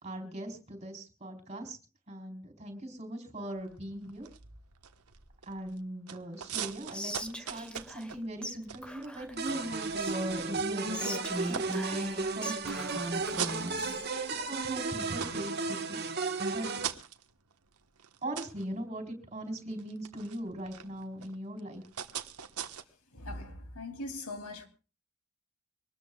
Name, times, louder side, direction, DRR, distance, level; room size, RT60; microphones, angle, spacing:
voice 1, 0.0-1.8 2.1-4.3 5.5-13.9 14.3-16.0 16.5-16.7 18.2-21.8, right 1 dB, 30° right, 4.1 m, -40 dB
sound 1, 3.6-5.8 6.1-10.8 11.2-12.5 13.0-14.4 14.8-22.8, right 8 dB, 90° right, 1.3 m, -43 dB
Whispering, 6.9-8.2 8.4-8.6 8.8-10.4 10.9-14.1, right 1 dB, 5° left, 1.2 m, -39 dB
sound 2, 9.4-16.9, right 3 dB, 45° right, 1.5 m, -34 dB
voice 2, 23.1-24.7, left 2 dB, 85° left, 3.0 m, -40 dB
24.5 x 19.5 x 2.4 m
head